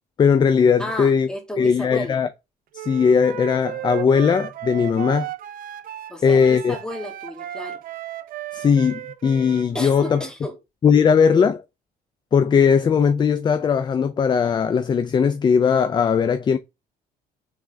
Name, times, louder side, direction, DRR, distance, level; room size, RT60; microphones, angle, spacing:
voice 1, 0.2-1.3 1.6-2.3 2.7-5.3 6.2-6.8 8.5-10.2 10.8-11.6 12.3-16.6, left 6 dB, 25° left, 0.4 m, -18 dB
voice 2, 0.8-2.2 6.1-7.8 9.7-10.6, equal, 5° left, 1.6 m, -32 dB
Wind instrument woodwind instrument, 2.7-10.3, right 13 dB, 55° right, 0.5 m, -35 dB
3.7 x 3.5 x 3.2 m
cardioid pair, 110°, 17 cm